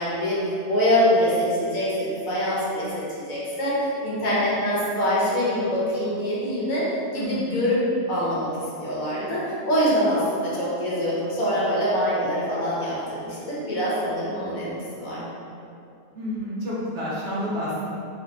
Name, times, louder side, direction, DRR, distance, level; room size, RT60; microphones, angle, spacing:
voice 1, 0.0-6.8 7.1-7.8 8.1-8.5 8.8-14.7 15.0-15.3, equal, 70° left, -7 dB, 1.3 m, -24 dB
voice 2, 7.2-7.6 16.1-17.9, equal, 55° right, -8 dB, 1.0 m, -30 dB
3.3 x 2.6 x 3.9 m, 2.6 s
omnidirectional pair, 1.6 m